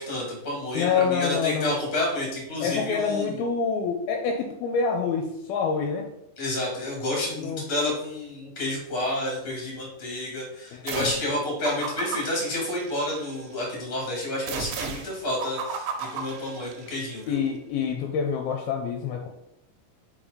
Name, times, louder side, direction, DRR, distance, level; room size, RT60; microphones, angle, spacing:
voice 1, 0.0-3.4 6.4-17.4, left 1 dB, 20° left, -2 dB, 1.7 m, -30 dB
voice 2, 0.7-1.7 2.6-6.1 7.4-7.6 10.7-11.1 17.3-19.3, left 6 dB, 80° left, 3 dB, 2.4 m, -27 dB
sound 1, 10.9-11.3 11.6-13.4 14.5-17.1, right 6 dB, 85° right, 2.9 m, -35 dB
5.5 x 5.2 x 5.0 m, 0.79 s
omnidirectional pair, 4.7 m